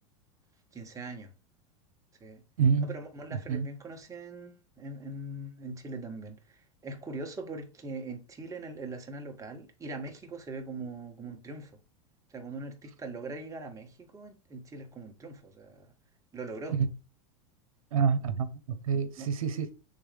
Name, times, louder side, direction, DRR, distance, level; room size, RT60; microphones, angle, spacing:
voice 1, 0.7-1.3 2.2-2.4 2.8-11.7 12.3-15.9 16.3-16.8 19.2-19.3, right 2 dB, 20° right, 1.6 m, -41 dB
voice 2, 2.6-3.0 3.3-3.7 13.2-13.3 16.7-16.9 17.9-19.7, right 6 dB, 85° right, 0.9 m, -28 dB
8.0 x 3.6 x 3.5 m
hypercardioid pair, 110°, 18 cm